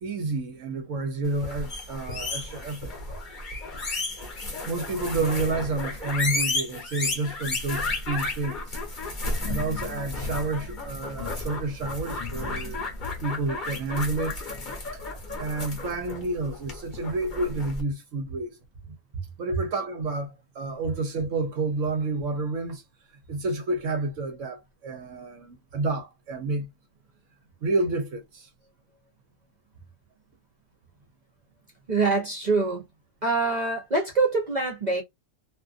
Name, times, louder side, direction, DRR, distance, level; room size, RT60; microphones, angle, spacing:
voice 1, 0.0-2.9 4.7-9.0 9.5-12.9 13.2-14.4 14.9-15.0 15.4-18.6 19.4-22.8 23.3-26.7 27.6-28.5, right 3 dB, 65° right, 0.9 m, -30 dB
sound 1, 1.3-17.8, left 2 dB, 35° left, 1.0 m, -33 dB
voice 2, 31.9-32.8 33.2-35.0, right 3 dB, 40° right, 0.7 m, -24 dB
2.6 x 2.4 x 2.4 m
omnidirectional pair, 1.5 m